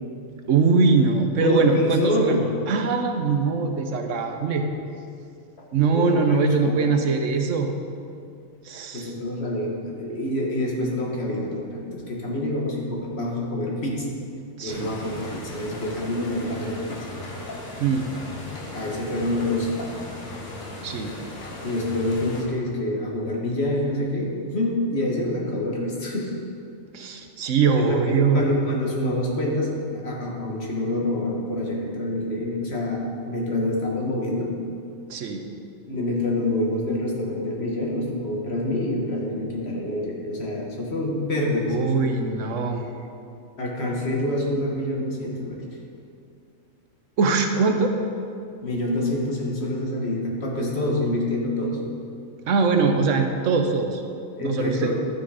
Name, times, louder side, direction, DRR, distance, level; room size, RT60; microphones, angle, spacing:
voice 1, 0.5-2.4 2.7-4.7 5.7-7.7 8.6-9.1 14.6-14.9 17.8-18.1 20.8-21.1 26.9-28.4 35.1-35.4 41.7-42.8 47.2-47.9 52.5-54.0 54.4-54.9, right 4 dB, 70° right, 5 dB, 1.1 m, -22 dB
voice 2, 1.4-2.5 5.9-7.0 8.9-14.1 14.6-17.1 18.7-19.8 21.6-26.3 27.7-34.6 35.9-41.9 43.6-45.6 48.6-51.8 54.4-54.9, left 1 dB, 50° left, -2 dB, 1.7 m, -26 dB
sound 1, 14.7-22.4, left 1 dB, 90° left, 1.8 m, -37 dB
11.5 x 6.2 x 4.9 m, 2.4 s
omnidirectional pair, 1.4 m